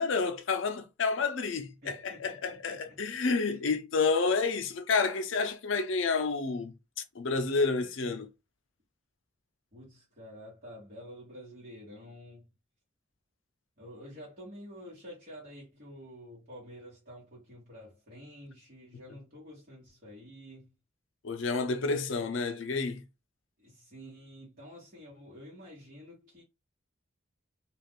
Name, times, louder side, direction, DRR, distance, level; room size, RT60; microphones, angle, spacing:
voice 1, 0.0-6.7 7.1-8.3 18.9-19.0 21.2-23.0, left 4 dB, 70° left, 0.5 m, -29 dB
voice 2, 1.8-3.0 3.4-3.6 9.7-12.4 13.8-20.7 23.6-26.4, equal, 45° right, 1.2 m, -49 dB
2.4 x 2.3 x 3.5 m
head